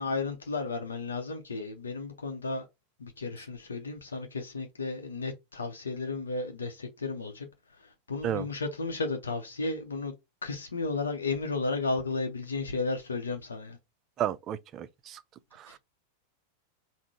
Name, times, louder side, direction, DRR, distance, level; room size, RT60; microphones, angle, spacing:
voice 1, 0.0-2.7 3.0-10.1 10.4-13.8 15.7-15.8, left 3 dB, 70° left, 0.7 m, -33 dB
voice 2, 14.2-15.2 15.6-15.8, right 10 dB, 30° right, 0.4 m, -32 dB
3.6 x 2.1 x 4.3 m
figure-of-eight pair, 90°, 0 cm